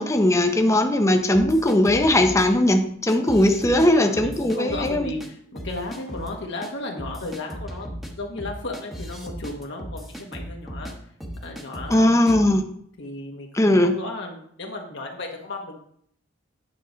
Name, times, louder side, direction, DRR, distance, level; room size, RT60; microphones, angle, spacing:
voice 1, 0.0-5.1 11.9-12.6 13.5-13.9, left 1 dB, 15° left, 5 dB, 0.7 m, -19 dB
sound 1, 1.3-2.5 3.1-3.9 4.1-5.3 5.6-6.3 6.6-6.7 7.0-10.9 11.2-12.0 12.3-12.5, equal, ahead, 1.1 m, -36 dB
voice 2, 3.6-7.9 8.2-10.9 11.4-12.2 13.0-13.5 13.8-15.8, left 2 dB, 60° left, 1 dB, 1.2 m, -34 dB
9.2 x 6.5 x 3.9 m, 0.65 s
head